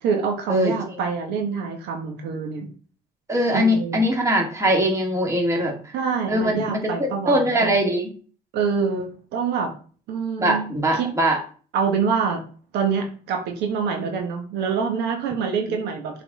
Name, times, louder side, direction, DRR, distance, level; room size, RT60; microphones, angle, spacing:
voice 1, 0.0-2.7 3.5-4.0 5.9-7.7 8.5-9.7 10.1-11.1 11.7-12.4 12.7-16.2, right 6 dB, 85° right, 3 dB, 1.4 m, -26 dB
voice 2, 3.3-5.7 6.3-8.1 10.4-11.4 15.5-15.6, equal, 15° right, 0 dB, 2.2 m, -21 dB
7.5 x 4.2 x 4.2 m, 0.41 s
cardioid pair, 110°, 17 cm